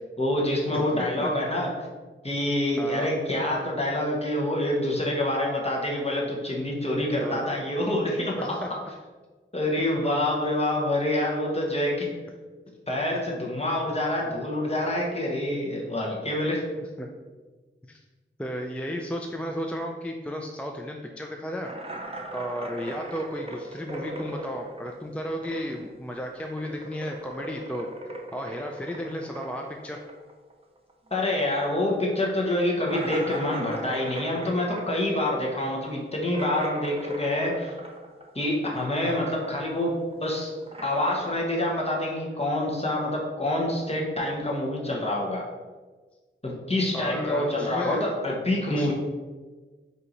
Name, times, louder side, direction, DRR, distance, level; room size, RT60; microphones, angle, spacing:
voice 1, 0.2-1.7 2.2-8.3 9.5-12.1 12.9-16.6 31.1-37.7 38.3-40.5 40.8-45.5 46.4-48.9, left 1 dB, 30° left, -2 dB, 1.1 m, -26 dB
voice 2, 0.7-1.3 2.8-3.1 7.2-7.5 8.4-8.7 16.8-17.1 17.8-18.0 18.4-21.7 22.3-27.9 28.3-30.0 46.9-48.0 48.7-48.9, equal, 5° left, 2 dB, 0.3 m, -34 dB
sound 1, 21.6-25.9 26.2-31.2 31.5-31.6 32.0-32.1 32.8-38.4 38.7-39.6 39.9-41.4, right 1 dB, 30° right, 0.6 m, -38 dB
4.4 x 2.8 x 3.9 m, 1.3 s
wide cardioid pair, 65°, 21 cm